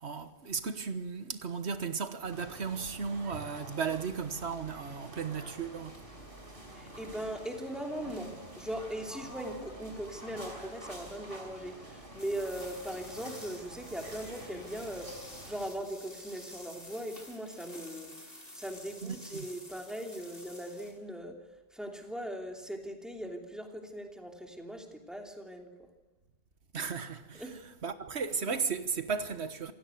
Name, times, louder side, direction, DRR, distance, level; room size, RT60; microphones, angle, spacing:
voice 1, 0.0-6.0 19.0-19.5 26.7-29.7, right 5 dB, 90° right, 1.6 m, -35 dB
sound 1, 2.2-15.7, right 1 dB, 55° right, 5.3 m, -48 dB
voice 2, 6.7-15.1 15.4-18.1 18.5-21.4 21.7-25.7 27.4-27.5, right 1 dB, ahead, 3.1 m, -39 dB
sound 2, 12.2-20.9, left 1 dB, 60° left, 7.0 m, -50 dB
27.5 x 16.5 x 9.3 m
omnidirectional pair, 1.1 m